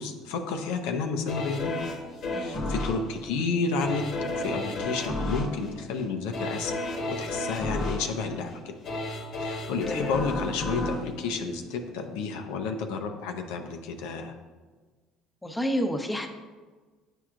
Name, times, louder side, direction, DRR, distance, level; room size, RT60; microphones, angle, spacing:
voice 1, 0.0-1.7 2.4-4.0 4.3-6.8 7.1-8.7 9.4-14.3, left 4 dB, 85° left, 5 dB, 0.6 m, -31 dB
sound 1, 1.3-12.2 12.7-12.8, left 1 dB, 60° left, 1.0 m, -33 dB
voice 2, 15.4-16.3, equal, 10° left, 4 dB, 0.8 m, -30 dB
8.9 x 4.6 x 2.5 m, 1.4 s
supercardioid pair, 80°, 0 cm